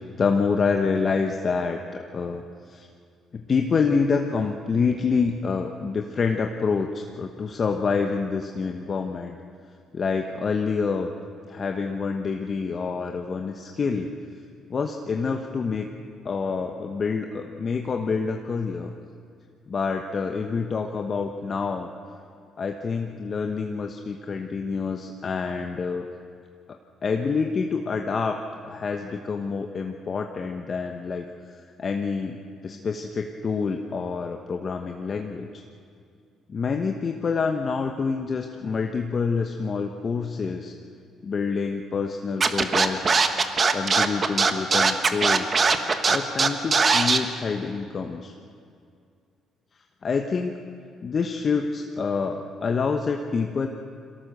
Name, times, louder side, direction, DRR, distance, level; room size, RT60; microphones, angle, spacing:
voice 1, 0.2-2.4 2.7-2.9 3.3-9.3 9.9-11.1 11.5-14.1 14.7-15.9 16.2-18.9 19.7-21.9 22.6-26.0 26.7-31.3 31.8-32.4 32.6-35.6 36.5-40.7 41.2-43.2 43.7-45.6 46.1-48.3 50.0-50.5 51.0-53.7, left 5 dB, 45° left, 4 dB, 1.1 m, -27 dB
Scratching (performance technique), 42.4-47.2, right 4 dB, 40° right, 1.5 m, -20 dB
22.5 x 17.5 x 6.8 m, 2.4 s
hypercardioid pair, 55°, 0 cm